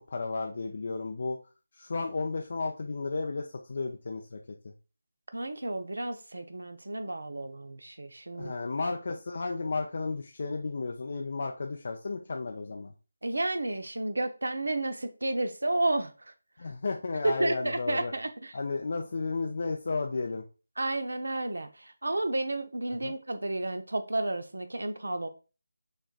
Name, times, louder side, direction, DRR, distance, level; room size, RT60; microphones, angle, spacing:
voice 1, 0.1-1.4 1.7-4.7 8.4-12.9 16.6-18.1 18.5-20.4 23.0-23.2, left 3 dB, 50° left, 2 dB, 0.6 m, -33 dB
voice 2, 5.3-8.5 13.2-16.1 17.2-18.5 20.8-25.3, right 2 dB, 70° right, 8 dB, 0.8 m, -31 dB
6.4 x 3.3 x 2.4 m, 0.33 s
figure-of-eight pair, 160°, 0 cm